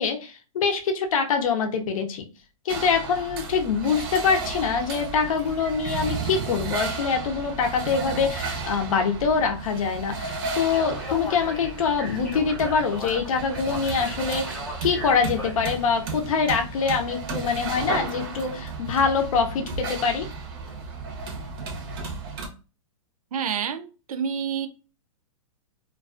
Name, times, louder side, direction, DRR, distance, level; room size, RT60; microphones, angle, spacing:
voice 1, 0.0-2.3 2.7-20.3, left 5 dB, 70° left, 0.6 m, -24 dB
sound 1, 2.7-22.5, right 4 dB, 40° right, 0.6 m, -34 dB
Speech, 10.6-15.9, left 1 dB, 5° left, 0.4 m, -38 dB
voice 2, 23.3-24.7, right 7 dB, 90° right, 0.5 m, -28 dB
2.3 x 2.2 x 2.4 m
hypercardioid pair, 150°, 18 cm